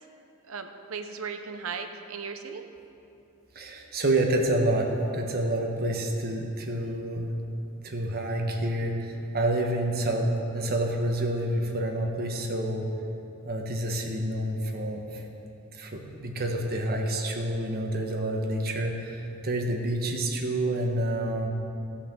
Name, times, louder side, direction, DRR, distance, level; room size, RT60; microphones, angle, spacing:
voice 1, 0.5-2.7, right 5 dB, 70° right, 7 dB, 0.8 m, -37 dB
voice 2, 3.5-7.2 7.8-12.9 13.4-15.2 15.7-21.5, right 1 dB, 45° right, 2 dB, 1.2 m, -28 dB
14.0 x 5.7 x 6.9 m, 2.8 s
head